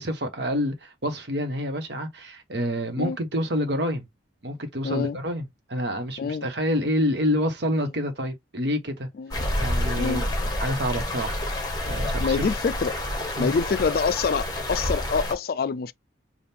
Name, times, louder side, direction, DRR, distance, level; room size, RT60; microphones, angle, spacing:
voice 1, 0.0-4.1 4.4-9.1 9.6-10.3 10.6-11.4 11.9-12.5 13.4-13.5, equal, 65° right, 1.1 m, -27 dB
voice 2, 4.8-5.2 6.2-6.5 9.2-9.5 10.0-10.2 12.2-13.0 13.4-15.9, left 5 dB, 55° left, 0.3 m, -26 dB
sound 1, 9.3-15.3, left 1 dB, 20° left, 1.0 m, -28 dB
3.6 x 2.4 x 4.3 m
head